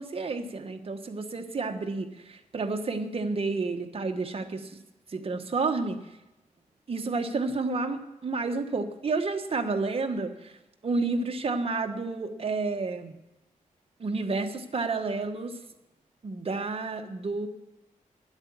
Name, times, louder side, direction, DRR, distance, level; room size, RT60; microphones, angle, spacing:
voice 1, 0.0-4.8 5.1-6.0 6.9-10.5 10.8-13.1 14.0-15.6 16.2-17.5, right 3 dB, 45° right, 5 dB, 1.3 m, -30 dB
11.0 x 8.0 x 7.1 m, 0.92 s
wide cardioid pair, 95°, 13 cm